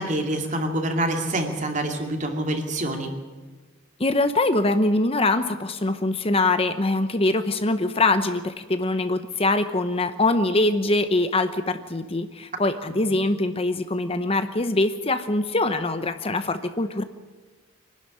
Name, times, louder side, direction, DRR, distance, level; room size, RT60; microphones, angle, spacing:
voice 1, 0.0-3.2 12.9-13.0, right 1 dB, 40° right, 4 dB, 2.6 m, -26 dB
voice 2, 4.0-17.0, left 2 dB, 30° left, 10 dB, 0.9 m, -23 dB
24.5 x 12.0 x 9.8 m, 1.3 s
head